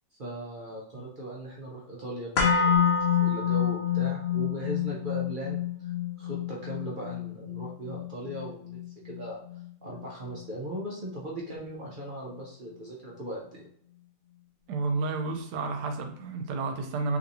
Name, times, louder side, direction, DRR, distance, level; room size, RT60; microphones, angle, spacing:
voice 1, 0.2-5.9 6.2-9.4 9.8-13.6, right 1 dB, 60° right, 0.5 m, -38 dB
sound 1, 2.4-10.4 10.7-10.8, left 8 dB, 55° left, 0.7 m, -28 dB
voice 2, 14.7-17.2, right 3 dB, 85° right, 1.2 m, -31 dB
3.2 x 2.9 x 2.6 m
omnidirectional pair, 1.8 m